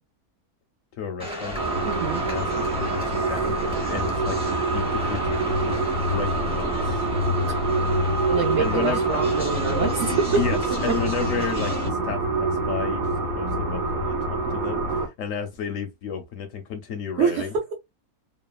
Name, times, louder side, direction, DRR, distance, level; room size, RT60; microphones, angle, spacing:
voice 1, 1.0-1.6 2.2-2.5 2.8-3.0 3.3-3.6 3.9-4.4 4.7-7.0 8.6-9.3 10.4-13.0 13.4-17.5, left 7 dB, 70° left, 0.8 m, -32 dB
sound 1, 1.2-11.9, equal, 5° right, 0.6 m, -34 dB
sound 2, 1.5-15.1, right 2 dB, 90° right, 1.3 m, -25 dB
voice 2, 1.9-2.2 8.3-10.1 17.2-17.5, right 5 dB, 60° right, 0.8 m, -26 dB
3.1 x 2.0 x 2.3 m
omnidirectional pair, 1.7 m